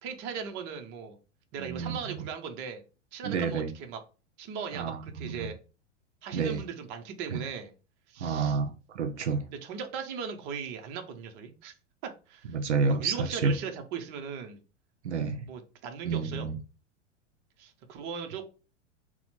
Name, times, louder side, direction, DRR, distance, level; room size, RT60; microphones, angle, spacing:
voice 1, 0.0-1.2 1.5-2.8 3.1-4.0 4.4-5.6 6.2-7.7 8.1-8.6 9.6-11.7 12.0-12.6 13.0-14.6 15.5-16.5 17.6-18.4, right 6 dB, 30° right, 0.7 m, -38 dB
voice 2, 1.6-2.2 3.2-3.7 4.7-5.5 6.3-6.6 7.3-7.4 8.2-9.5 12.5-13.5 15.0-15.5 16.0-16.5, right 5 dB, 70° right, 0.5 m, -30 dB
4.1 x 2.1 x 4.1 m
figure-of-eight pair, 90°, 36 cm